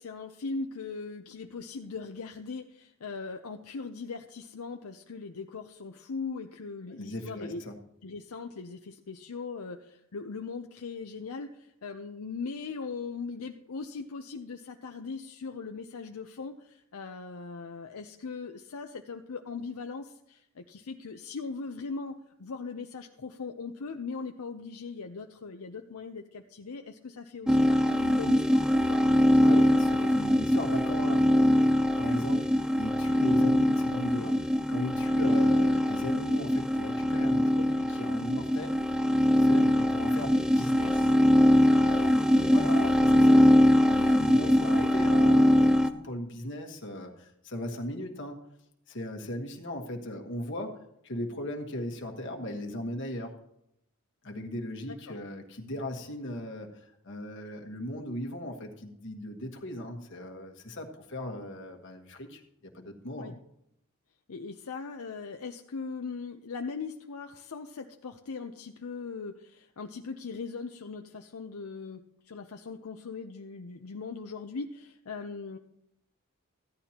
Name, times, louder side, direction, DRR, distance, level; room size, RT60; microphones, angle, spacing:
voice 1, 0.0-7.6 8.0-29.0 39.5-39.7 44.4-44.6 55.1-55.2 63.2-63.3 64.3-75.6, left 4 dB, 80° left, 5 dB, 0.6 m, -39 dB
voice 2, 6.9-7.7 29.4-38.8 39.3-41.1 41.4-43.5 43.9-48.4 48.9-50.7 51.0-53.3 54.2-63.3, left 1 dB, 55° left, 3 dB, 1.4 m, -38 dB
sound 1, 27.5-45.9, equal, 5° right, 0.4 m, -23 dB
15.0 x 11.0 x 2.9 m, 0.79 s
head